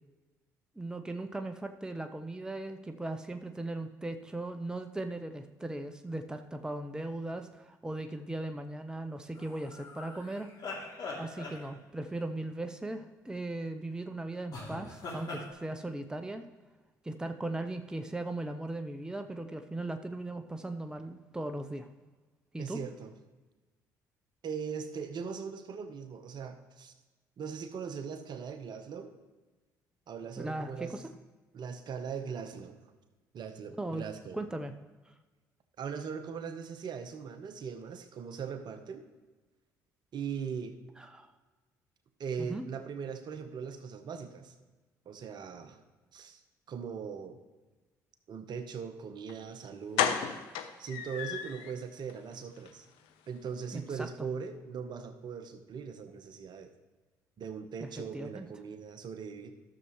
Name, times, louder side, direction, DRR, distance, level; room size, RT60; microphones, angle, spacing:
voice 1, 0.8-10.5 11.2-16.5 17.0-21.9 22.5-22.8 30.4-31.0 33.8-34.0 34.3-34.7 35.1-35.2 41.0-41.3 42.4-42.6 53.7-54.1 57.8-58.5, right 2 dB, 10° right, 7 dB, 0.7 m, -38 dB
sound 1, 9.3-12.1 14.5-15.5, left 3 dB, 50° left, 2.7 m, -42 dB
voice 2, 22.6-23.1 24.4-26.9 27.4-29.1 30.1-30.9 31.5-32.8 33.3-34.4 35.8-39.0 40.1-40.7 42.2-44.5 45.1-45.8 46.1-46.4 46.7-47.4 48.3-50.2 50.8-52.9 53.3-56.7 57.4-59.5, right 6 dB, 55° right, 8 dB, 1.0 m, -40 dB
sound 2, 49.3-49.4 49.9-51.7 52.1-52.2 52.6-52.7 53.0-53.1, left 9 dB, 70° left, 0.7 m, -32 dB
12.5 x 6.8 x 3.1 m, 1.2 s
hypercardioid pair, 55°, 9 cm